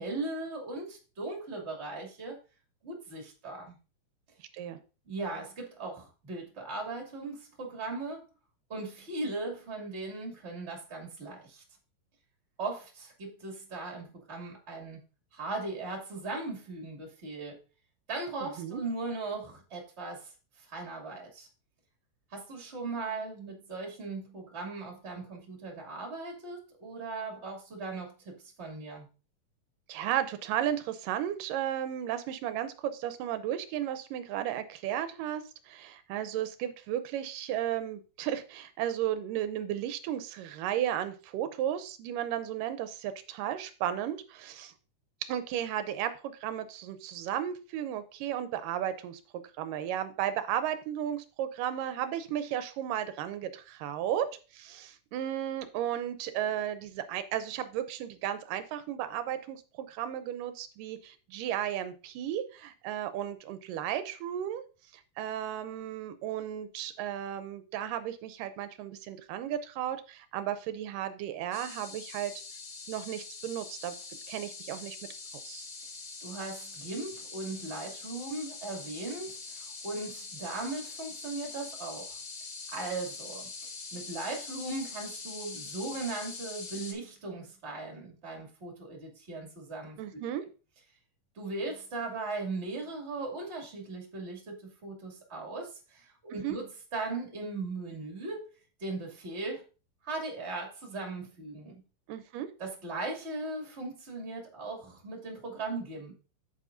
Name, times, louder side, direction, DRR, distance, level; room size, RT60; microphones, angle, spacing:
voice 1, 0.0-2.4 2.8-3.8 5.1-8.2 8.7-11.6 12.6-15.0 15.3-17.6 18.1-20.3 20.6-21.5 22.3-29.1 76.2-82.2 82.7-83.5 83.9-90.3 91.4-98.5 98.8-99.6 100.0-101.8 102.6-106.1, right 3 dB, 20° right, 1 dB, 2.1 m, -38 dB
voice 2, 4.4-4.8 18.6-18.8 29.9-44.7 45.2-49.2 49.6-64.6 64.9-72.3 72.9-73.9 74.3-75.0 75.4-75.7 90.0-90.4 96.3-96.6 102.1-102.5, right 11 dB, 85° right, 11 dB, 2.3 m, -34 dB
sound 1, 71.5-86.9, left 4 dB, 45° left, 2.2 m, -43 dB
8.4 x 8.2 x 2.6 m, 0.33 s
omnidirectional pair, 3.8 m